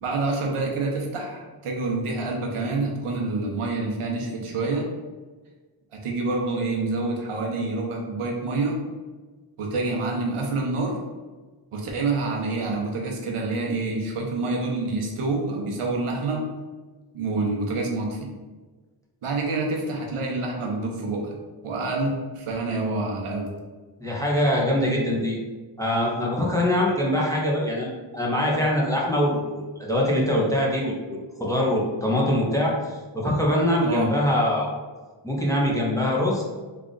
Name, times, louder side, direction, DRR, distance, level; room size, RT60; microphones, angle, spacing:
voice 1, 0.0-4.9 5.9-8.8 9.6-11.0 11.7-16.5 17.1-18.3 19.2-21.4 21.6-23.5 33.8-34.1, right 3 dB, 85° right, 0 dB, 0.9 m, -27 dB
voice 2, 24.0-25.4 25.8-32.7 33.1-34.7 35.2-36.4, left 1 dB, 5° left, -3 dB, 0.6 m, -23 dB
3.5 x 2.4 x 3.8 m, 1.3 s
wide cardioid pair, 125°, 50 cm